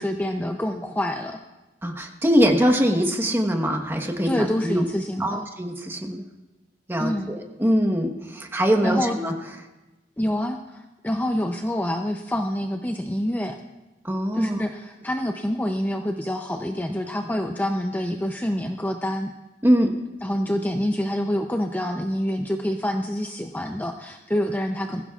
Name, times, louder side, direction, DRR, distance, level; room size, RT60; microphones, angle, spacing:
voice 1, 0.0-1.4 4.2-5.5 7.0-7.4 8.8-9.2 10.2-13.6 14.3-19.3 20.2-25.0, equal, 10° left, 4 dB, 0.5 m, -27 dB
voice 2, 1.8-4.9 5.2-6.2 6.9-9.3 14.0-14.6 19.6-19.9, equal, 15° right, 3 dB, 1.2 m, -22 dB
21.5 x 15.0 x 2.4 m, 1.1 s
head